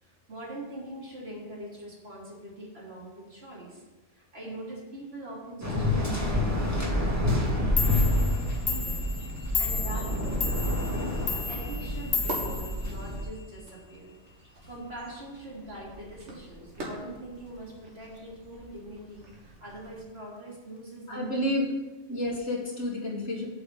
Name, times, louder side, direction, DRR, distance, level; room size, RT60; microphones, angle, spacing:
voice 1, 0.0-3.8 4.1-8.3 8.5-10.9 11.2-14.1 14.7-21.5, right 1 dB, 60° right, -6 dB, 3.7 m, -43 dB
Waves surf, 5.6-13.2, left 1 dB, 15° right, 2.1 m, -28 dB
sound 1, 7.1-20.0, right 1 dB, 75° right, 2.3 m, -46 dB
Clock, 7.5-7.6 7.8-13.4, left 5 dB, 45° left, 0.9 m, -33 dB
voice 2, 21.1-21.6 22.1-23.4, left 1 dB, 70° left, -2 dB, 2.4 m, -30 dB
8.0 x 5.9 x 7.6 m, 1.1 s
omnidirectional pair, 1.2 m